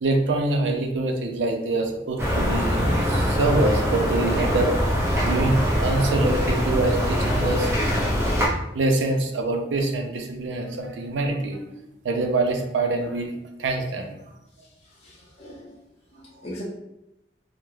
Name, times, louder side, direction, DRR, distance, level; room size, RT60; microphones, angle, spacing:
voice 1, 0.0-4.7 5.2-7.7 8.7-11.6 12.0-14.1, right 2 dB, 90° right, 4 dB, 0.4 m, -25 dB
sound 1, 2.2-8.5, equal, 15° right, 0.5 m, -23 dB
voice 2, 15.0-15.8 16.1-16.6, equal, 35° left, -4 dB, 0.5 m, -40 dB
2.3 x 2.0 x 3.1 m, 0.87 s
head